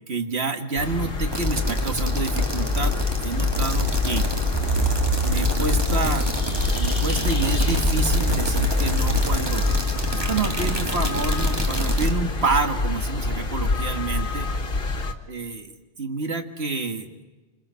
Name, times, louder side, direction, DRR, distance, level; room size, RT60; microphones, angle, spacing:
voice 1, 0.1-4.3 5.2-6.3 6.8-9.7 10.1-14.5 15.3-15.7 16.0-17.1, right 4 dB, 75° right, 6 dB, 2.0 m, -28 dB
sound 1, 0.7-15.1, left 2 dB, 60° left, 1.8 m, -29 dB
Weird Creepy Poping Sounds, 1.3-12.1, left 1 dB, 25° right, 2.1 m, -24 dB
27.0 x 26.5 x 5.7 m, 1.2 s
omnidirectional pair, 1.1 m